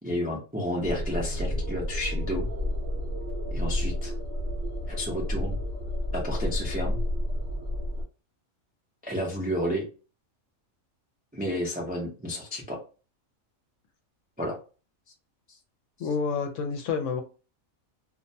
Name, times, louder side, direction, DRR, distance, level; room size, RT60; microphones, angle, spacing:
voice 1, 0.0-2.5 3.5-4.1 4.9-5.6 6.1-7.0 9.0-9.9 11.3-12.8 14.4-14.6, equal, 15° right, -2 dB, 0.3 m, -31 dB
sound 1, 0.8-8.0, left 1 dB, 55° right, 0.8 m, -30 dB
voice 2, 16.0-17.2, left 5 dB, 70° left, 5 dB, 0.9 m, -28 dB
2.5 x 2.1 x 2.6 m, 0.34 s
omnidirectional pair, 1.5 m